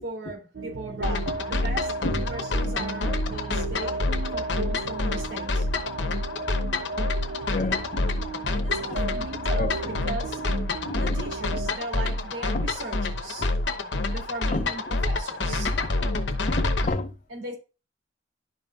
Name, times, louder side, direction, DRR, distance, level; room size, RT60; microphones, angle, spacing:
voice 1, 0.0-4.0 4.3-5.7 8.5-10.4 10.9-13.5 14.1-15.7 17.3-17.5, right 2 dB, 90° right, 3.1 m, -38 dB
sound 1, 0.5-11.7, right 3 dB, 60° right, 0.8 m, -35 dB
sound 2, 1.0-16.9, left 2 dB, 70° left, 0.9 m, -28 dB
voice 2, 7.5-8.0 9.6-9.7 10.8-11.0 12.5-12.7 14.5-14.6 15.7-15.9 16.5-17.1, left 2 dB, 40° left, 0.6 m, -29 dB
11.5 x 5.3 x 2.4 m
head